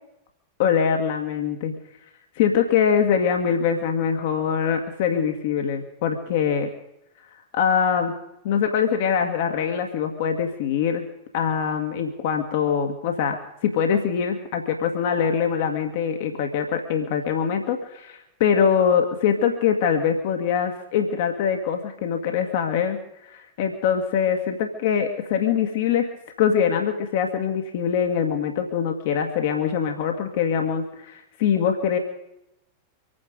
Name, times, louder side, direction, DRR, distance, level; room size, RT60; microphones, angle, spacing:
voice 1, 0.6-1.7 2.4-6.7 7.5-8.2 8.4-11.1 11.3-26.1 26.4-32.0, left 7 dB, 50° left, 4 dB, 1.8 m, -23 dB
25.0 x 9.6 x 5.2 m, 0.84 s
figure-of-eight pair, 90°, 0 cm